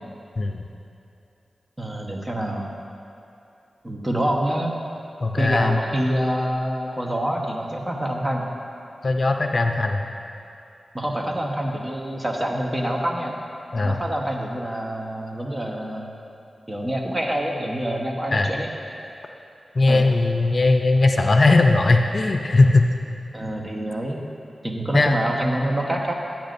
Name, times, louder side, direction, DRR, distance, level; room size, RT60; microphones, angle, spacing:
voice 1, 1.8-2.7 3.8-4.7 5.4-8.5 10.9-13.3 13.8-16.1 16.7-18.7 19.9-20.1 23.3-24.2 24.6-26.1, right 1 dB, 25° right, 0 dB, 1.2 m, -26 dB
voice 2, 5.2-5.8 9.0-10.1 13.7-14.0 18.3-18.5 19.8-22.9 24.9-25.1, left 2 dB, 55° left, 4 dB, 0.5 m, -19 dB
12.0 x 8.7 x 2.6 m, 2.7 s
cardioid pair, 50°, 0 cm